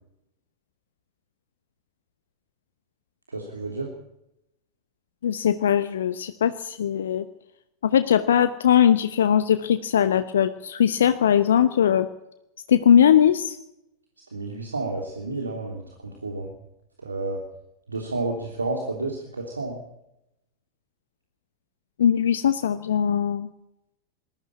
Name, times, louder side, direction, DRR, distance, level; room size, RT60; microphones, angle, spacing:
voice 1, 3.3-3.9 14.3-15.8 16.2-16.5 17.0-17.4 17.9-19.8, right 2 dB, 80° right, 1 dB, 3.2 m, -30 dB
voice 2, 5.2-7.2 7.8-12.1 12.7-13.6 22.0-23.5, left 9 dB, 65° left, 11 dB, 0.9 m, -20 dB
20.5 x 13.5 x 10.0 m, 0.85 s
figure-of-eight pair, 90°, 0 cm